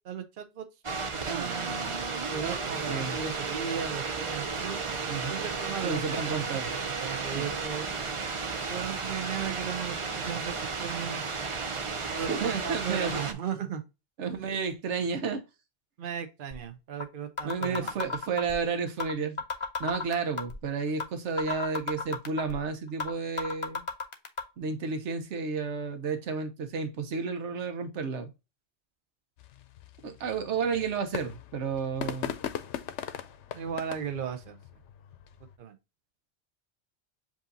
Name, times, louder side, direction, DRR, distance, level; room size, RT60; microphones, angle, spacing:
voice 1, 0.0-0.7 1.3-4.8 5.3-8.0 8.7-10.5 10.8-11.2 12.1-13.8 16.0-18.0 33.5-34.6 35.6-35.8, right 7 dB, 55° right, 0.9 m, -36 dB
sound 1, 0.8-13.3, right 4 dB, 35° right, 0.5 m, -33 dB
voice 2, 2.9-3.2 5.1-6.7 7.3-7.5 12.3-13.2 14.2-15.4 17.4-19.4 19.8-23.8 24.6-28.3 30.0-32.3, right 5 dB, 90° right, 1.1 m, -32 dB
sound 2, 16.5-16.6 17.0-17.1 17.4-18.6 19.0-19.1 19.4-20.6 21.0-21.1 21.4-22.6 23.0-23.1 23.4-24.4, left 4 dB, 35° left, 0.7 m, -32 dB
sound 3, 29.4-35.6, left 10 dB, 85° left, 0.9 m, -40 dB
7.3 x 2.8 x 2.6 m
omnidirectional pair, 1.2 m